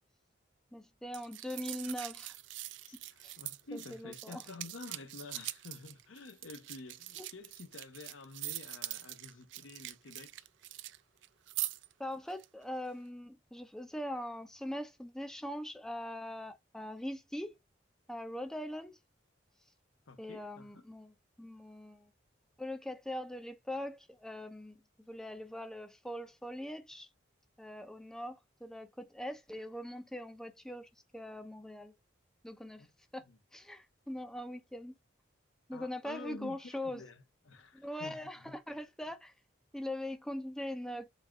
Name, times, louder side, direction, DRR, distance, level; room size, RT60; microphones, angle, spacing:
voice 1, 0.7-2.3 3.2-3.4 3.7-4.4 7.2-7.3 12.0-17.6 18.1-19.0 20.2-22.1 22.6-24.8 25.1-27.1 27.6-31.9 32.4-32.9 33.1-33.2 33.5-34.9 35.7-37.0 37.7-39.3 39.7-41.1, left 1 dB, 5° left, 0.4 m, -42 dB
sound 1, 1.1-11.0 11.2-11.9 12.3-12.4, right 16 dB, 70° right, 0.3 m, -43 dB
voice 2, 2.9-10.5 20.1-20.8 32.8-32.9 33.2-33.4 35.7-38.6, left 3 dB, 80° left, 0.8 m, -50 dB
4.0 x 2.4 x 3.4 m
head